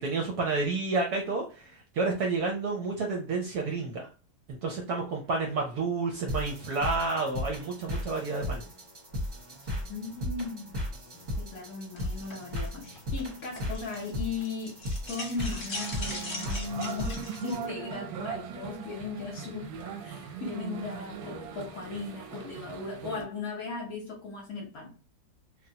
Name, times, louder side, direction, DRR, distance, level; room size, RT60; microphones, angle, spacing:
voice 1, 0.0-4.1 4.5-8.6, right 3 dB, 70° right, 1 dB, 1.0 m, -30 dB
sound 1, 6.3-17.6, left 1 dB, 40° right, 0.7 m, -36 dB
voice 2, 9.9-10.8 11.1-25.0, left 4 dB, 60° left, -1 dB, 1.0 m, -37 dB
sound 2, 12.0-14.1 14.4-17.5, left 2 dB, 35° left, 1.0 m, -40 dB
sound 3, 15.7-23.2, right 7 dB, 90° right, 1.4 m, -40 dB
3.3 x 2.3 x 2.7 m, 0.34 s
omnidirectional pair, 2.2 m